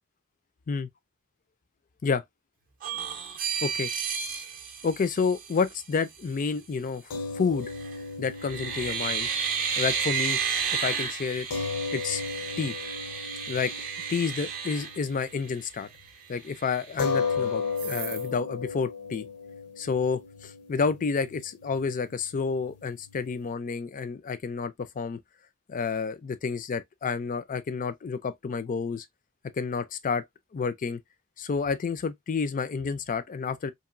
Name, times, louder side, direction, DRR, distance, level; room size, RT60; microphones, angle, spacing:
sound 1, 2.8-5.8 7.6-8.0 8.4-15.6 16.1-16.2 16.5-17.3 17.8-18.3, right 6 dB, 40° right, 0.5 m, -32 dB
voice 1, 4.8-7.0 7.3-7.7 8.2-9.3 9.8-10.4 10.7-11.5 11.9-12.2 12.6-12.8 13.5-13.7 14.1-15.9 16.3-19.3 19.8-25.2 25.7-29.0 29.5-30.2 30.5-31.0 31.4-33.7, left 5 dB, 35° left, 0.4 m, -29 dB
sound 2, 7.1-15.6 15.9-16.1 17.0-23.5, left 5 dB, 85° left, 0.7 m, -36 dB
2.9 x 2.6 x 2.5 m
head